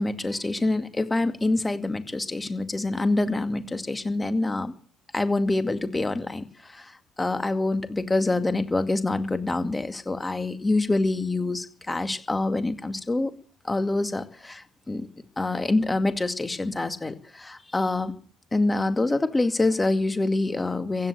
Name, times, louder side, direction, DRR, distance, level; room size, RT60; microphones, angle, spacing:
voice 1, 0.0-4.7 5.1-13.3 13.6-15.1 15.4-18.1 18.5-21.1, left 2 dB, 20° left, 8 dB, 2.2 m, -26 dB
16.0 x 10.5 x 7.9 m, 0.42 s
hypercardioid pair, 50°, 0 cm